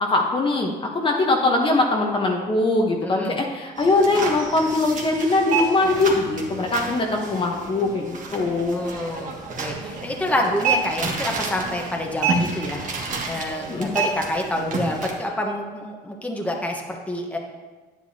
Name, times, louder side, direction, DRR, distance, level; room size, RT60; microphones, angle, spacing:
voice 1, 0.0-8.8 13.7-13.9, left 2 dB, 30° left, 1 dB, 1.1 m, -22 dB
voice 2, 3.0-3.4 8.7-9.3 9.6-12.8 13.3-17.4, left 1 dB, 10° left, 1 dB, 1.2 m, -27 dB
sound 1, 3.8-15.1, right 4 dB, 50° right, 1.7 m, -29 dB
10.0 x 9.3 x 2.9 m, 1.3 s
cardioid pair, 110°, 17 cm